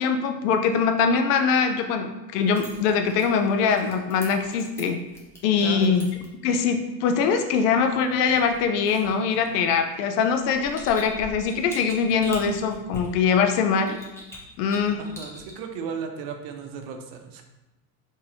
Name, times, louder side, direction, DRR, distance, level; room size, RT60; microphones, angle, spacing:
voice 1, 0.0-5.0 5.4-6.1 6.4-14.0 14.6-15.0, left 6 dB, 70° left, 6 dB, 0.6 m, -22 dB
sound 1, 2.4-6.3 8.1-9.7 10.3-13.4 13.9-15.5, equal, 5° left, 0.9 m, -43 dB
voice 2, 5.6-6.0 15.0-17.4, right 6 dB, 60° right, 5 dB, 0.7 m, -35 dB
3.9 x 2.9 x 2.8 m, 1.0 s
hypercardioid pair, 80°, 49 cm